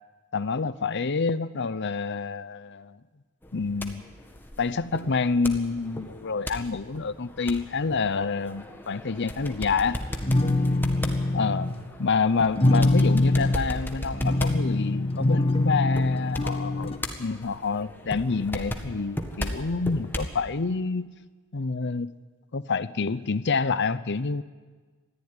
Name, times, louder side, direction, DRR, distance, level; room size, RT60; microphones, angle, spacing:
voice 1, 0.3-3.0 3.5-4.0 4.6-10.0 11.3-11.7 12.0-16.9 17.2-21.1 21.5-22.1 22.5-24.4, left 4 dB, 55° left, 15 dB, 0.7 m, -27 dB
sound 1, 3.4-20.4, left 1 dB, 10° left, 1.7 m, -37 dB
sound 2, 10.0-11.8 12.6-13.6 14.1-17.0, left 2 dB, 25° left, 1.5 m, -24 dB
21.0 x 14.5 x 9.8 m, 1.4 s
head